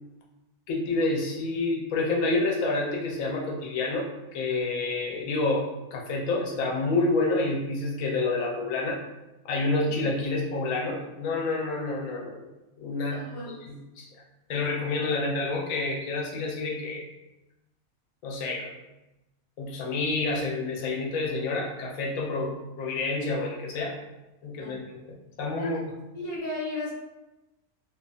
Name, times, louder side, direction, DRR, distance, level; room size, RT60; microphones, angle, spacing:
voice 1, 0.7-9.0 9.4-12.5 12.8-13.2 13.7-14.1 14.5-17.0 18.2-18.7 19.6-24.0 24.4-24.8 25.4-25.8, left 3 dB, 85° left, -2 dB, 1.0 m, -28 dB
voice 2, 13.1-13.5 24.6-24.8 25.6-25.8 26.1-26.9, left 2 dB, 35° left, -7 dB, 0.7 m, -34 dB
2.4 x 2.2 x 2.5 m, 0.99 s
omnidirectional pair, 1.4 m